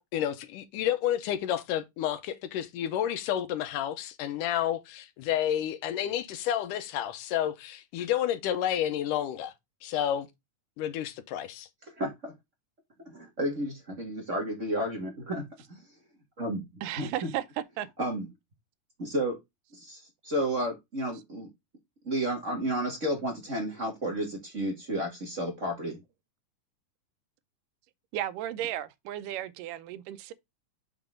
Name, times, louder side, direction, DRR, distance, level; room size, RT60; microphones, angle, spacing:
voice 1, 0.0-9.5 9.8-10.3 10.8-11.7, left 11 dB, 80° left, 2.5 m, -30 dB
voice 2, 12.0-12.3 13.1-15.8 16.4-17.3 18.0-18.3 19.0-19.4 19.7-21.5 22.0-26.0, right 1 dB, 30° right, 1.7 m, -32 dB
voice 3, 16.8-17.9 28.1-30.3, right 12 dB, 90° right, 2.3 m, -34 dB
6.5 x 6.0 x 3.6 m
omnidirectional pair, 3.7 m